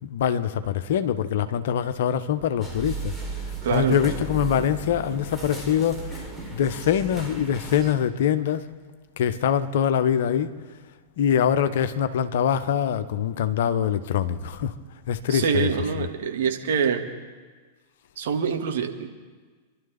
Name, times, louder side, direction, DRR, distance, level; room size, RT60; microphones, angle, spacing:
voice 1, 0.0-3.1 3.7-8.7 9.2-10.5 11.2-14.7 15.1-16.1, left 9 dB, 60° left, 0.9 m, -24 dB
sound 1, 2.6-7.9, right 3 dB, 5° right, 3.4 m, -35 dB
voice 2, 3.6-4.0 15.3-17.0 18.2-19.1, right 6 dB, 60° right, 2.0 m, -25 dB
27.5 x 12.0 x 3.5 m
figure-of-eight pair, 95°, 0 cm